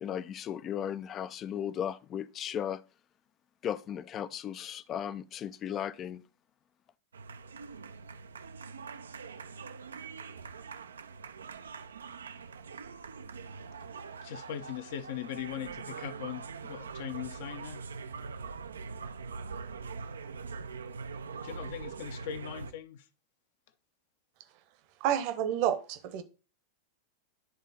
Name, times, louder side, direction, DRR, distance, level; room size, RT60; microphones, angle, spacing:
voice 1, 0.0-2.8 3.6-6.2, left 9 dB, 30° left, 0.4 m, -36 dB
sound 1, 7.1-22.7, right 5 dB, 70° right, 0.4 m, -43 dB
voice 2, 14.1-17.8 21.4-23.1, left 10 dB, 50° left, 0.8 m, -40 dB
voice 3, 25.0-26.2, right 10 dB, 45° right, 0.9 m, -29 dB
10.5 x 3.6 x 4.1 m
figure-of-eight pair, 90°, 0 cm